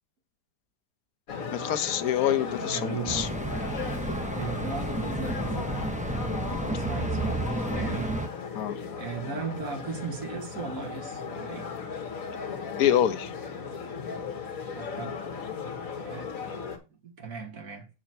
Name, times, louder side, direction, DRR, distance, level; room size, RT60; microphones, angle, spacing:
sound 1, 1.3-16.8, left 5 dB, 70° left, 1.7 m, -36 dB
voice 1, 1.5-3.3 8.5-8.8 12.8-13.3, left 10 dB, 85° left, 1.2 m, -26 dB
voice 2, 2.6-3.4 4.3-5.8 6.5-8.2 9.0-11.7 14.7-15.2 16.0-16.3 17.0-17.9, right 5 dB, 70° right, 2.0 m, -37 dB
sound 2, 3.1-8.3, right 2 dB, 10° right, 0.4 m, -31 dB
7.6 x 5.0 x 4.3 m
omnidirectional pair, 1.5 m